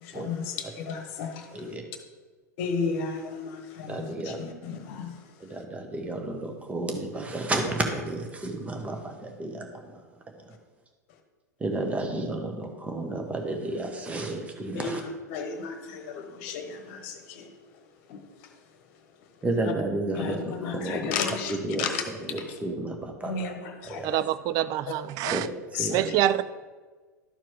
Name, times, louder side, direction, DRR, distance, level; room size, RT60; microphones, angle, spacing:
voice 1, 0.0-1.8 2.6-5.5 14.7-17.5 18.1-18.8 20.1-22.0 22.5-22.6 23.2-24.2 24.6-24.7 25.7-26.2, left 5 dB, 50° left, 6 dB, 1.2 m, -34 dB
voice 2, 1.5-1.8 3.9-4.4 5.4-9.9 10.5-10.6 11.6-15.0 19.4-21.1 21.5-21.9 22.3-23.3 23.9-24.1 25.3-25.4 25.7-26.1, right 2 dB, 15° right, 3 dB, 1.2 m, -32 dB
voice 3, 24.0-25.5 25.9-26.4, right 12 dB, 40° right, 15 dB, 0.4 m, -26 dB
12.0 x 4.5 x 4.7 m, 1.4 s
figure-of-eight pair, 85°, 9 cm